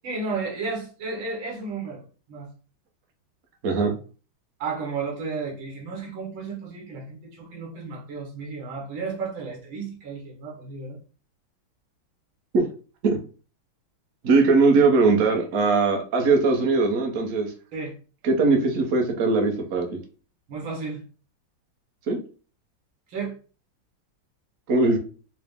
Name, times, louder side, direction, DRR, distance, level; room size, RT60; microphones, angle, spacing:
voice 1, 0.0-2.0 2.3-2.5 4.6-11.0 17.7-17.9 20.5-21.0 23.1-23.4, right 4 dB, 80° right, 1.9 m, -33 dB
voice 2, 3.6-3.9 12.5-12.7 13.0-13.2 14.2-17.5 18.2-20.0 22.1-22.2 24.7-25.0, right 3 dB, 55° right, 0.9 m, -20 dB
4.8 x 2.1 x 3.5 m
omnidirectional pair, 2.2 m